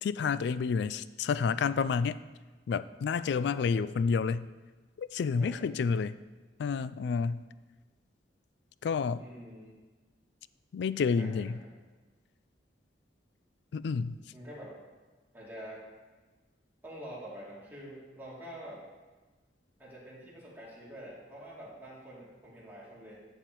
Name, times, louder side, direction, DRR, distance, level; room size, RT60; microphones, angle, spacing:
voice 1, 0.0-2.2 2.7-4.5 5.0-6.2 6.6-7.4 8.8-9.2 10.7-11.6 13.7-14.2, left 5 dB, 65° left, 15 dB, 0.3 m, -29 dB
voice 2, 3.2-3.7 5.4-5.5 9.2-9.8 11.2-11.5 14.3-14.7 15.3-15.8 16.8-18.8 19.8-23.2, equal, 10° right, -7 dB, 2.7 m, -46 dB
15.0 x 5.7 x 3.0 m, 1.3 s
head